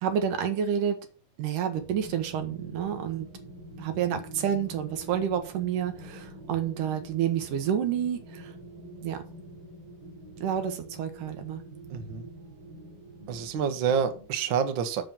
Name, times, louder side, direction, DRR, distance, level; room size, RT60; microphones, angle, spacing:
voice 1, 0.0-1.0 1.4-3.3 3.8-8.5 9.0-9.2 10.4-11.6, right 9 dB, 75° right, 2.8 m, -29 dB
sound 1, 1.7-14.3, right 1 dB, 40° right, 5.9 m, -45 dB
voice 2, 11.9-12.3 13.3-15.0, right 7 dB, 60° right, 1.3 m, -28 dB
7.6 x 7.1 x 5.9 m
omnidirectional pair, 3.8 m